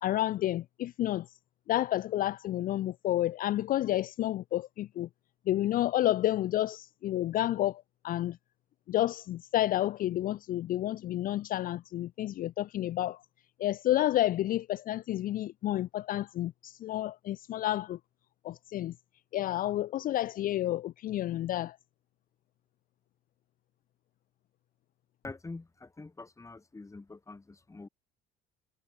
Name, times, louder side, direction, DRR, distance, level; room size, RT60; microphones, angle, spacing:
voice 1, 0.0-1.4 1.7-5.1 5.5-8.4 8.9-13.2 13.6-18.0 18.4-19.0 19.3-21.8, left 14 dB, 50° left, 0.5 m, -30 dB
voice 2, 25.2-27.9, left 3 dB, 15° left, 1.7 m, -45 dB
hypercardioid pair, 70°, 19 cm